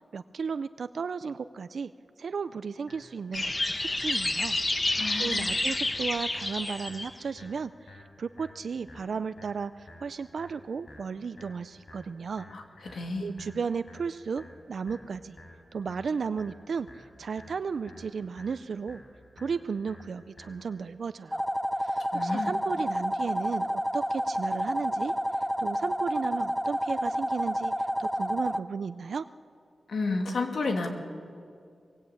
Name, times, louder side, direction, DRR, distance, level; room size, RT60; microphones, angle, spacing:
voice 1, 0.0-1.9 2.2-3.5 4.0-4.6 5.2-12.5 13.2-15.4 15.7-19.0 19.4-21.4 21.8-29.3, right 5 dB, 65° right, 12 dB, 0.5 m, -34 dB
sound 1, 2.9-20.9, left 1 dB, 60° left, 6.8 m, -52 dB
sound 2, 3.3-7.1, left 2 dB, 25° left, 1.2 m, -29 dB
voice 2, 5.0-5.5 12.5-13.3 22.1-22.5 29.9-30.9, left 3 dB, 75° left, 3 dB, 2.8 m, -31 dB
sound 3, 21.3-28.6, equal, ahead, 0.6 m, -29 dB
23.5 x 20.5 x 8.6 m, 2.3 s
wide cardioid pair, 150°, 0 cm